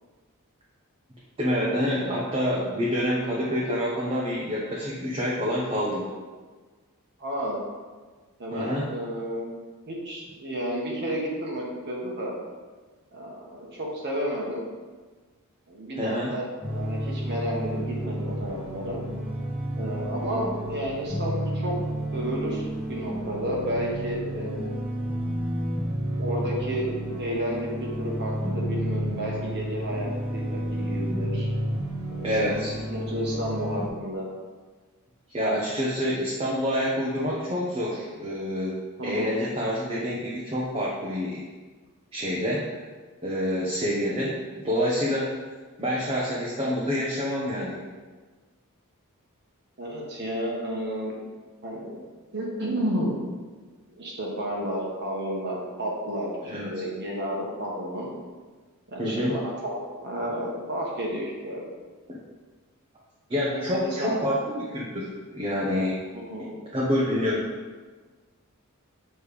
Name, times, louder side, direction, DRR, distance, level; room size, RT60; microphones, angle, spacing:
voice 1, 1.4-6.1 8.5-8.9 16.0-16.4 32.2-32.7 35.3-38.8 39.0-41.4 42.1-42.7 43.2-45.3 45.8-47.8 56.4-56.7 59.0-59.4 62.1-62.2 63.3-66.0 66.4-67.5, equal, 25° right, -6 dB, 0.9 m, -27 dB
voice 2, 7.2-7.6 8.4-9.5 9.9-12.3 13.1-14.6 15.7-19.0 19.8-21.8 22.1-22.6 22.9-24.7 26.2-26.9 27.2-31.5 32.1-32.6 32.9-34.3 39.0-39.4 49.8-51.2 51.6-52.0 52.3-53.1 53.9-58.1 58.9-59.7 60.0-61.6 63.5-64.2 66.1-66.6, equal, 50° right, -3 dB, 1.2 m, -31 dB
sound 1, 16.6-33.9, equal, 5° right, 1.5 m, -31 dB
6.7 x 3.3 x 5.2 m, 1.4 s
head